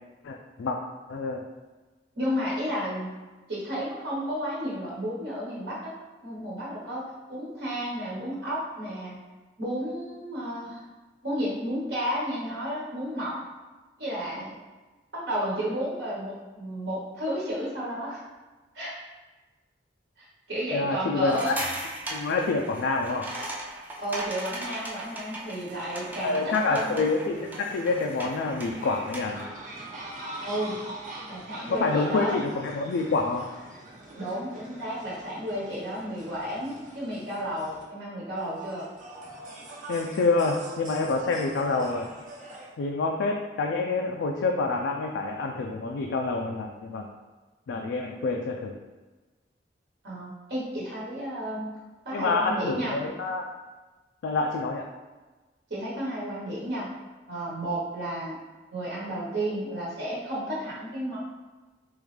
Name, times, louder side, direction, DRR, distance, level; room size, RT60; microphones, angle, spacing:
voice 1, 0.2-0.8 1.1-1.4 20.7-21.6 22.1-23.3 26.2-29.5 31.7-33.5 39.9-42.1 42.8-47.1 47.7-48.8 52.1-53.4 54.2-54.8, left 3 dB, 90° left, 1 dB, 0.3 m, -27 dB
voice 2, 2.1-3.1 3.5-5.9 6.2-9.2 9.6-10.8 11.2-13.4 14.0-14.5 15.1-18.2 18.7-18.9 20.2-21.6 24.0-27.1 30.4-30.8 31.3-32.4 34.2-38.9 50.0-51.7 52.0-53.0 55.7-56.9 57.3-58.4 58.7-61.2, equal, 70° right, -6 dB, 1.1 m, -32 dB
sound 1, 21.3-29.4, right 1 dB, 10° right, 0.5 m, -38 dB
sound 2, 25.7-37.8 38.4-42.7, right 1 dB, 45° right, 0.8 m, -43 dB
3.6 x 3.0 x 3.2 m, 1.2 s
head